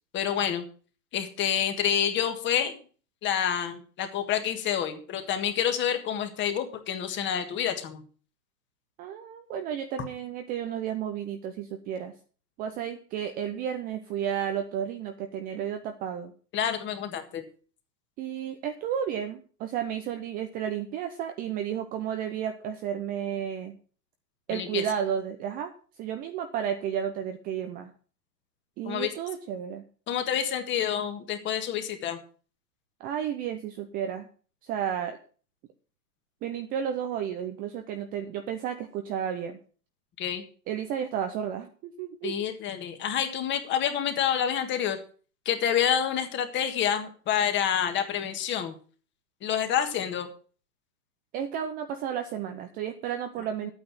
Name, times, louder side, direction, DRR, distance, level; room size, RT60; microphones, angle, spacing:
voice 1, 0.1-0.6 1.1-2.8 3.2-8.0 16.5-17.4 24.5-24.8 28.8-29.1 30.1-32.2 40.2-40.4 42.2-45.0 45.4-48.7 49.4-50.3, left 9 dB, 25° left, 7 dB, 1.7 m, -28 dB
voice 2, 9.0-12.1 12.6-16.3 18.2-23.8 24.5-25.7 26.0-27.9 28.8-29.8 33.0-34.3 34.6-35.2 36.4-39.6 40.7-42.4 51.3-53.7, right 9 dB, 20° right, 7 dB, 0.6 m, -32 dB
11.0 x 8.9 x 6.1 m, 0.40 s
hypercardioid pair, 135°, 49 cm